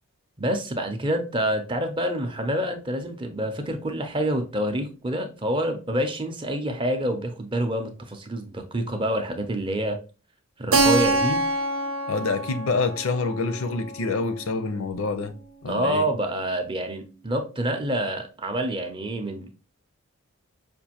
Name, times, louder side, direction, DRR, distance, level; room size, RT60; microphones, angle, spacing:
voice 1, 0.4-10.0 10.6-11.4 15.7-19.5, right 1 dB, 25° right, 0.5 m, -27 dB
Keyboard (musical), 10.7-15.3, right 2 dB, 70° right, 0.6 m, -26 dB
voice 2, 12.1-15.3 15.6-16.1, left 3 dB, 70° left, 0.5 m, -27 dB
5.1 x 2.5 x 2.8 m
head